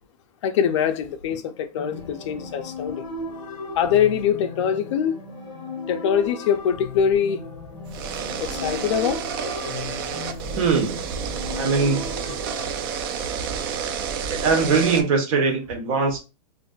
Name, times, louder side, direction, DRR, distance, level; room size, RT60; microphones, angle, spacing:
voice 1, 0.4-3.0 3.8-5.2 5.9-7.4 8.4-9.2, left 8 dB, 45° left, 0.4 m, -23 dB
sound 1, 1.8-13.5, left 3 dB, 20° left, 0.7 m, -37 dB
sound 2, 7.8-15.0, right 7 dB, 35° right, 0.4 m, -30 dB
voice 2, 10.5-10.9 11.5-12.1 14.3-16.2, right 4 dB, 55° right, 1.2 m, -21 dB
3.8 x 2.5 x 2.3 m
supercardioid pair, 160°, 21 cm